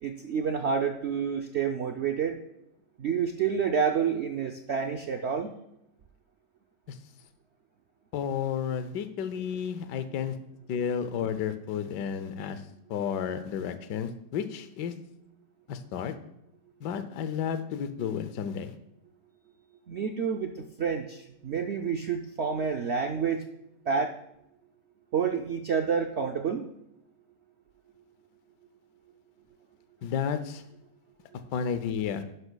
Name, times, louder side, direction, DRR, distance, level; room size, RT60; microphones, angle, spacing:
voice 1, 0.0-2.3 3.0-5.5 19.9-23.4 23.9-24.1 25.1-26.7, right 6 dB, 75° right, 4 dB, 0.6 m, -29 dB
voice 2, 8.1-10.4 10.7-12.6 12.9-14.9 15.7-16.1 16.8-18.7 30.0-30.6 31.5-32.2, left 7 dB, 75° left, 10 dB, 1.3 m, -32 dB
11.5 x 11.0 x 2.3 m, 0.82 s
omnidirectional pair, 1.9 m